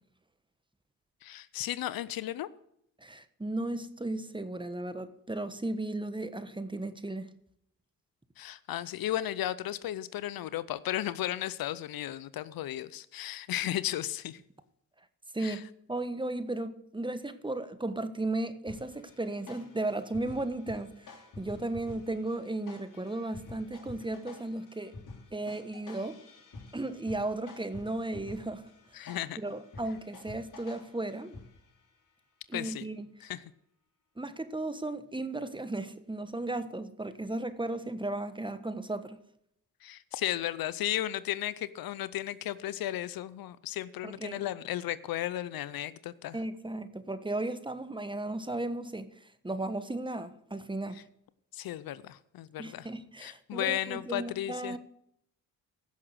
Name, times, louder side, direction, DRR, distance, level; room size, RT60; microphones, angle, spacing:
voice 1, 1.2-2.5 8.4-14.4 15.4-15.6 28.9-29.4 32.5-32.8 33.2-33.4 39.8-46.4 51.5-52.9 53.2-54.8, left 13 dB, 75° left, 0.7 m, -34 dB
voice 2, 3.0-7.3 15.3-15.6 15.9-24.9 25.3-26.2 26.7-28.7 29.0-31.4 32.5-33.1 34.2-39.2 44.0-44.4 46.3-51.0 52.6-54.8, right 2 dB, 15° right, 1.3 m, -35 dB
sound 1, 18.7-31.8, left 3 dB, 60° left, 3.2 m, -50 dB
16.0 x 6.3 x 6.5 m
supercardioid pair, 60°, 35 cm